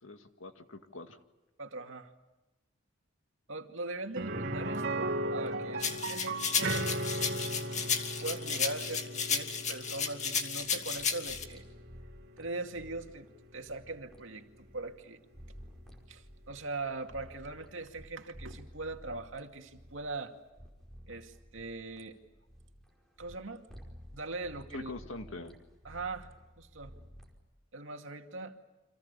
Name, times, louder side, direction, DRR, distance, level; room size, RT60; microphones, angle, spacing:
voice 1, 0.0-1.2 24.7-25.5, left 2 dB, 90° left, 7 dB, 2.0 m, -44 dB
voice 2, 1.6-2.1 3.5-7.9 8.2-11.7 12.4-13.3 13.5-15.2 16.1-20.3 21.1-22.2 23.2-23.6 24.1-24.9 25.8-26.3 26.6-26.9 27.7-28.6, right 3 dB, 80° right, 4 dB, 2.4 m, -41 dB
sound 1, 4.2-13.9 14.2-14.3 16.8-16.9, right 1 dB, 60° right, 2.9 m, -37 dB
sound 2, 5.8-11.4, left 6 dB, 40° left, 2.3 m, -33 dB
sound 3, 10.6-18.1 18.3-23.4 23.7-24.1 24.4-27.3, equal, ahead, 4.9 m, -53 dB
30.0 x 26.0 x 6.9 m, 1.1 s
head